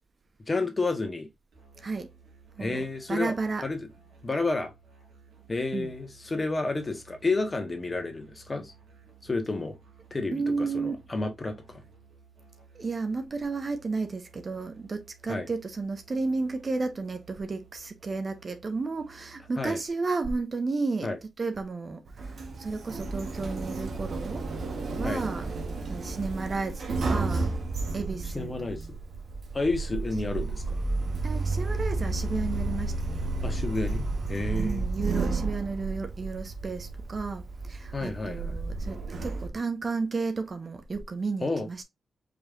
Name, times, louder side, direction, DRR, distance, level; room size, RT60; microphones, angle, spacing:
voice 1, 0.5-1.3 2.6-3.3 3.6-3.8 4.2-4.7 5.5-8.7 9.2-9.8 10.1-11.8 15.3-15.5 19.6-19.8 21.0-21.2 25.0-25.2 28.3-29.0 29.5-30.8 33.4-34.0 34.3-34.9 37.9-38.5 41.4-41.7, left 3 dB, 35° left, 1.4 m, -30 dB
Musical instrument, 1.5-19.9, right 5 dB, 85° right, 2.2 m, -57 dB
voice 2, 1.8-2.1 2.5-3.7 5.7-5.9 10.3-11.0 12.7-24.5 25.0-25.5 25.8-27.5 27.9-28.9 31.2-33.6 34.6-41.8, right 4 dB, 50° right, 0.9 m, -33 dB
Sliding door, 22.1-39.5, right 3 dB, 70° right, 1.1 m, -32 dB
5.0 x 3.3 x 2.5 m
cardioid pair, 55°, 0 cm